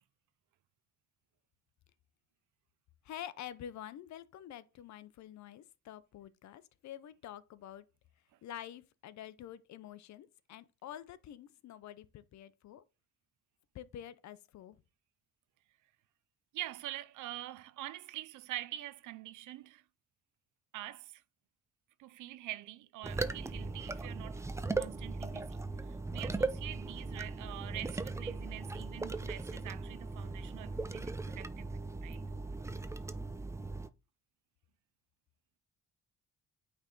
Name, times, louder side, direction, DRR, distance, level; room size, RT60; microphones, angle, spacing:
voice 1, 3.0-7.8 8.4-12.8 13.7-14.8, left 11 dB, 65° left, 0.6 m, -48 dB
voice 2, 16.5-19.8 20.7-21.2 22.0-32.2, right 15 dB, 80° right, 0.6 m, -45 dB
sound 1, 23.0-33.9, right 3 dB, 10° right, 0.4 m, -38 dB
8.8 x 3.4 x 3.8 m
cardioid pair, 90°, 30 cm